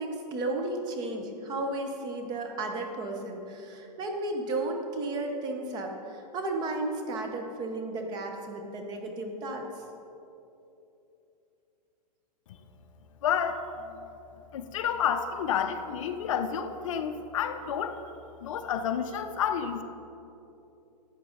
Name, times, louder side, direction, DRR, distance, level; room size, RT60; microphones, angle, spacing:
voice 1, 0.0-9.6, right 2 dB, 20° right, 3 dB, 0.8 m, -33 dB
voice 2, 13.2-13.6 14.5-18.0 18.4-19.8, left 8 dB, 50° left, 8 dB, 0.6 m, -30 dB
12.0 x 8.4 x 3.9 m, 2.9 s
hypercardioid pair, 155°, 21 cm